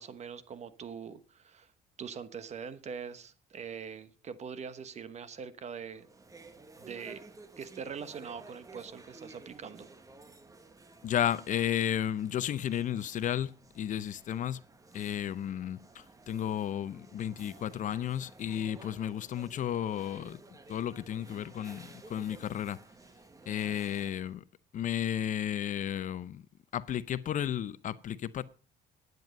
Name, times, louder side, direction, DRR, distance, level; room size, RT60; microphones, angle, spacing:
voice 1, 0.0-1.7 2.0-6.1 6.8-7.2 7.6-9.9, right 6 dB, 40° right, 1.1 m, -43 dB
sound 1, 5.9-24.3, right 3 dB, 20° right, 1.3 m, -54 dB
voice 2, 11.0-14.6 14.9-20.4 20.7-22.8 23.5-24.4 24.7-26.4 26.7-28.4, left 10 dB, 50° left, 0.6 m, -33 dB
11.0 x 9.2 x 5.2 m
cardioid pair, 110°, 17 cm